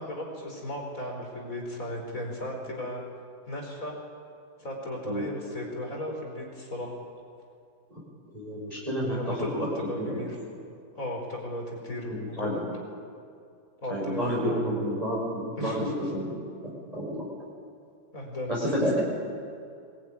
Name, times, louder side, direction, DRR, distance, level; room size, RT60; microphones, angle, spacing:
voice 1, 0.0-3.0 3.5-4.0 4.6-6.9 9.0-10.4 10.9-12.6 13.8-14.8 15.6-15.9 18.1-19.0, left 1 dB, 40° left, 0 dB, 4.9 m, -35 dB
voice 2, 8.3-9.7 10.0-10.3 12.1-12.6 13.9-16.4 16.9-17.2 18.5-19.0, equal, 20° right, -5 dB, 5.2 m, -30 dB
22.5 x 21.0 x 9.8 m, 2.4 s
omnidirectional pair, 2.2 m